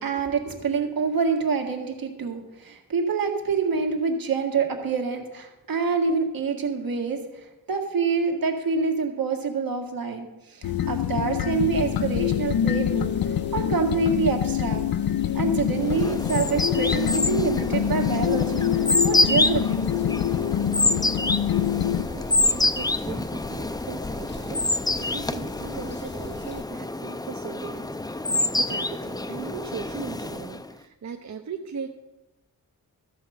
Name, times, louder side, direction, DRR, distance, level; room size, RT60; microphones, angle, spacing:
voice 1, 0.0-14.8 15.3-18.7 19.0-19.9, right 4 dB, 75° right, 3 dB, 1.9 m, -26 dB
sound 1, 10.6-22.0, left 10 dB, 80° left, 0.7 m, -25 dB
sound 2, 11.5-26.6, left 3 dB, 30° left, 0.8 m, -41 dB
sound 3, 15.7-30.7, left 2 dB, 10° left, 0.5 m, -27 dB
voice 2, 22.1-31.9, right 6 dB, 50° right, 4 dB, 0.8 m, -38 dB
14.0 x 6.5 x 5.7 m, 1.0 s
cardioid pair, 85°, 36 cm